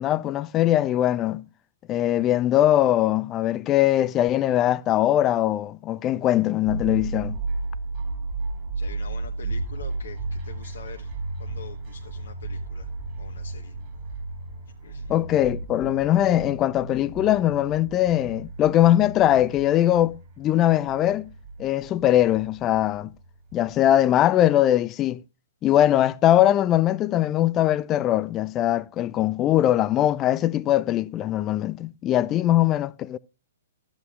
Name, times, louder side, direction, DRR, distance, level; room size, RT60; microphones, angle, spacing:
voice 1, 0.0-1.4 1.9-7.4 15.1-21.3 21.6-23.1 23.5-25.2 25.6-33.2, left 12 dB, 25° left, 0.4 m, -21 dB
sound 1, 6.7-24.2, right 3 dB, 35° right, 2.9 m, -34 dB
voice 2, 8.7-11.1 11.4-12.9 13.2-13.7 14.8-15.1, left 6 dB, 65° left, 1.2 m, -44 dB
13.5 x 8.1 x 2.4 m
figure-of-eight pair, 115°, 0 cm